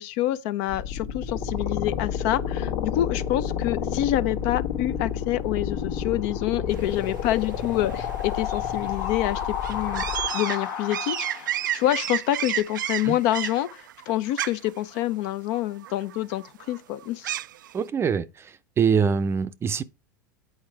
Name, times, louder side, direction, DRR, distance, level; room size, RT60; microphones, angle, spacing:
voice 1, 0.0-10.0 10.3-17.3, left 14 dB, 55° left, 0.6 m, -27 dB
sound 1, 0.7-11.7, left 8 dB, 75° left, 1.4 m, -30 dB
sound 2, 6.7-17.7, right 12 dB, 80° right, 0.4 m, -33 dB
voice 2, 17.7-18.5 18.8-19.8, right 6 dB, 25° right, 0.6 m, -24 dB
8.8 x 4.7 x 4.6 m
hypercardioid pair, 100°, 10 cm